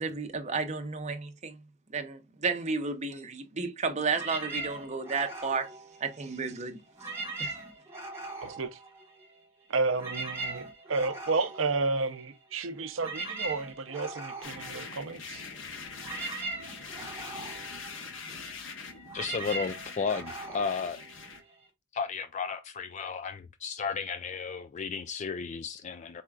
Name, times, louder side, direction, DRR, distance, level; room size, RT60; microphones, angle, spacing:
voice 1, 0.0-1.6 1.9-5.7 6.0-6.8 7.4-7.5, right 4 dB, 35° right, 0.8 m, -32 dB
sound 1, 4.1-6.5 6.9-9.4 9.7-21.7, right 3 dB, 15° right, 1.8 m, -41 dB
voice 2, 8.4-8.8 9.7-15.4, right 3 dB, 90° right, 0.6 m, -31 dB
sound 2, 14.4-21.4, left 4 dB, 80° left, 1.1 m, -43 dB
voice 3, 19.1-21.0 21.9-26.2, left 5 dB, 35° left, 0.3 m, -34 dB
4.5 x 4.3 x 2.4 m
head